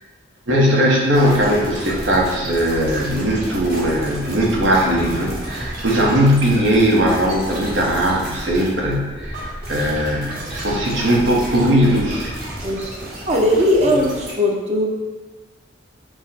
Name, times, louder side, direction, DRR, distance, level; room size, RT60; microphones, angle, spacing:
voice 1, 0.5-12.3, equal, 85° right, -2 dB, 0.8 m, -19 dB
sound 1, 1.1-14.3, right 1 dB, 50° right, 1.2 m, -31 dB
voice 2, 12.6-13.0 13.3-14.9, left 1 dB, 35° right, -1 dB, 0.5 m, -18 dB
4.8 x 2.1 x 4.1 m, 1.3 s
head